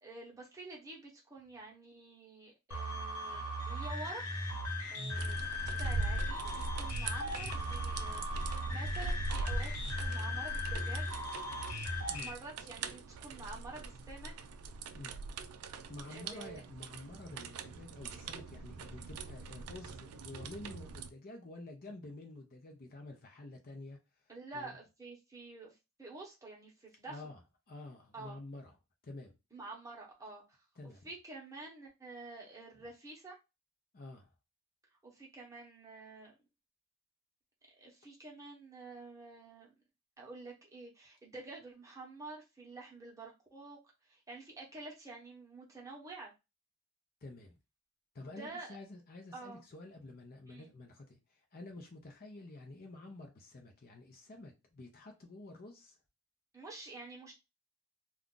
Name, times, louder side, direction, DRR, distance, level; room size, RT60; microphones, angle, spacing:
voice 1, 0.0-4.4 4.9-5.5 5.8-11.1 11.9-14.3 16.1-16.6 24.3-27.2 28.1-28.3 29.5-30.6 31.0-33.3 35.0-36.3 37.8-39.7 40.2-43.8 44.1-46.3 48.3-48.8 49.3-49.6 50.5-50.7 56.5-57.3, right 3 dB, 15° right, 0.9 m, -49 dB
sound 1, 2.7-12.3, left 1 dB, 80° left, 0.9 m, -38 dB
sound 2, 5.2-21.1, right 3 dB, 80° right, 0.4 m, -41 dB
voice 2, 15.9-24.0 24.5-24.8 27.1-27.4 27.7-28.7 29.0-29.3 30.8-31.1 32.8-32.9 33.9-34.3 47.2-47.5 48.1-56.0, left 2 dB, 40° left, 0.6 m, -49 dB
2.4 x 2.3 x 3.7 m
head